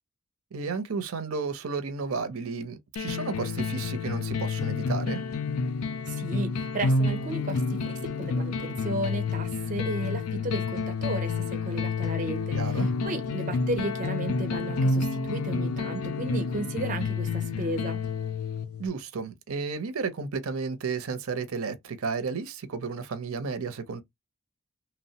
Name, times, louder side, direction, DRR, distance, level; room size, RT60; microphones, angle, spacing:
voice 1, 0.5-5.2 12.5-12.9 18.8-24.0, right 4 dB, 80° right, 0.6 m, -32 dB
sound 1, 3.0-18.9, left 4 dB, 85° left, 0.4 m, -29 dB
voice 2, 6.1-18.0, right 2 dB, 35° right, 0.4 m, -34 dB
2.9 x 2.0 x 2.7 m
head